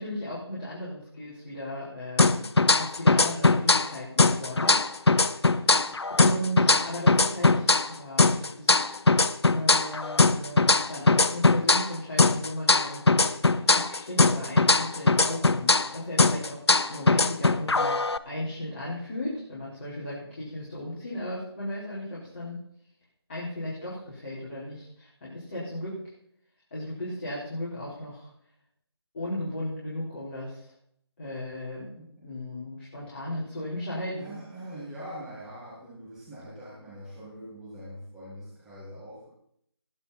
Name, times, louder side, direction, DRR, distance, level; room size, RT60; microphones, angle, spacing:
voice 1, 0.0-2.5 2.7-5.6 6.1-8.8 9.5-16.6 16.9-18.0 18.2-22.6 23.3-25.9 26.7-28.3 29.1-30.7 31.2-31.9 32.2-34.4, left 1 dB, 25° left, -9 dB, 4.7 m, -36 dB
sound 1, 2.2-3.9 4.2-7.9 8.2-11.9 12.2-15.9 16.2-18.2, left 3 dB, 70° left, 0.8 m, -21 dB
voice 2, 34.2-39.3, equal, 5° right, -10 dB, 2.0 m, -43 dB
19.5 x 8.8 x 4.3 m, 0.69 s
figure-of-eight pair, 165°, 14 cm